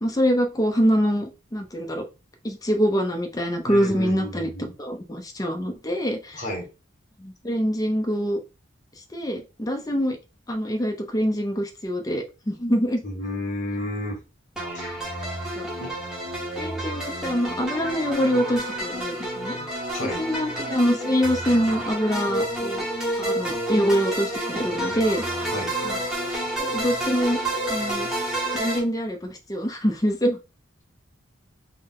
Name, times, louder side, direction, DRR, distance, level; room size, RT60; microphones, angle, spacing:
voice 1, 0.0-2.1 2.4-4.5 4.8-6.4 7.2-8.4 9.1-10.2 10.5-13.0 15.6-15.7 16.6-19.6 20.0-22.8 23.2-25.4 25.8-26.0 26.6-27.4 27.7-28.1 28.5-30.4, equal, 15° left, 4 dB, 0.5 m, -25 dB
voice 2, 3.6-4.7 6.3-6.7 13.0-14.2 14.7-15.0 15.8-15.9 19.5-20.2 25.5-25.7, left 1 dB, 35° left, 0 dB, 1.1 m, -32 dB
sound 1, 14.6-28.8, right 1 dB, 5° right, 1.0 m, -29 dB
3.7 x 2.1 x 3.6 m, 0.29 s
head